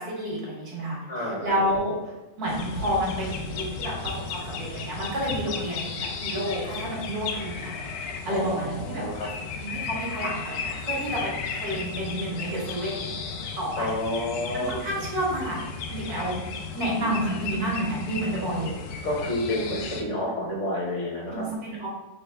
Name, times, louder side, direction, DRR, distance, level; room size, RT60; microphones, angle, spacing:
voice 1, 0.0-1.9 2.4-7.8 8.3-9.3 9.6-13.1 13.6-13.9 14.5-15.6 15.9-16.3 16.7-18.7 21.3-21.9, right 1 dB, 85° right, -3 dB, 1.9 m, -30 dB
voice 2, 1.1-1.5 8.3-9.3 13.8-14.7 17.0-17.1 19.0-21.4, left 1 dB, 55° left, -3 dB, 1.4 m, -29 dB
sound 1, 2.5-20.0, left 5 dB, 85° left, 1.1 m, -35 dB
4.0 x 3.3 x 3.4 m, 1.0 s
omnidirectional pair, 1.6 m